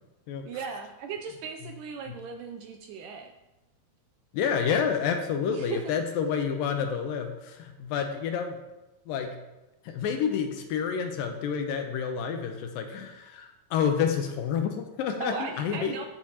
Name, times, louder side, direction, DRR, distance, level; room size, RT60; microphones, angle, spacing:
voice 1, 0.4-3.3 5.5-5.9 15.2-16.1, right 5 dB, 80° right, 5 dB, 1.9 m, -37 dB
voice 2, 4.3-8.6 9.1-9.4 9.9-16.1, left 7 dB, 75° left, 5 dB, 2.3 m, -29 dB
14.0 x 7.6 x 2.9 m, 1.0 s
omnidirectional pair, 4.3 m